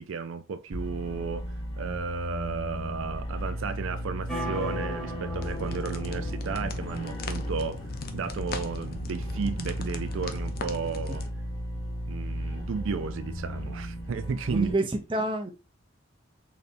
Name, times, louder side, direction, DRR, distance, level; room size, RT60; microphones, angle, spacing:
voice 1, 0.0-11.3 12.1-14.7, right 5 dB, 70° right, 0.4 m, -33 dB
sound 1, 0.7-14.7, equal, 30° left, 1.0 m, -35 dB
sound 2, 4.3-8.1, equal, ahead, 1.1 m, -37 dB
sound 3, 5.4-11.3, left 4 dB, 45° left, 0.5 m, -39 dB
voice 2, 14.5-15.5, right 2 dB, 25° right, 0.6 m, -28 dB
3.9 x 3.3 x 2.5 m
head